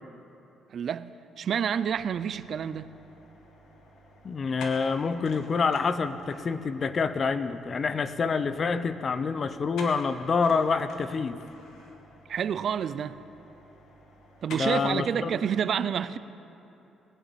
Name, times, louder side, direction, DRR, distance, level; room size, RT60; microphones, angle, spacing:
voice 1, 0.7-2.9 12.3-13.2 14.4-16.2, right 8 dB, 60° right, 0.5 m, -29 dB
sound 1, 1.8-15.0, left 2 dB, 85° left, 2.2 m, -49 dB
voice 2, 4.2-11.4 14.6-15.4, left 5 dB, 45° left, 0.8 m, -27 dB
19.5 x 8.0 x 9.2 m
cardioid pair, 90°, 0 cm